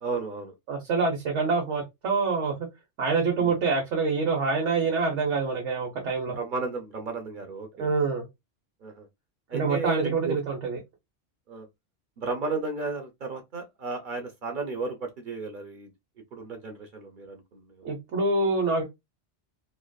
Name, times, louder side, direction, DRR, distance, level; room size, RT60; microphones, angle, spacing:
voice 1, 0.0-0.5 3.4-3.6 6.3-7.9 8.8-9.1 9.5-10.4 11.5-11.7 12.2-15.9 16.3-17.9, right 3 dB, 50° right, 0.7 m, -34 dB
voice 2, 0.7-2.5 3.0-6.4 7.8-8.3 9.5-10.8 17.8-18.8, right 4 dB, 75° right, 1.2 m, -26 dB
3.1 x 2.5 x 2.2 m
omnidirectional pair, 1.2 m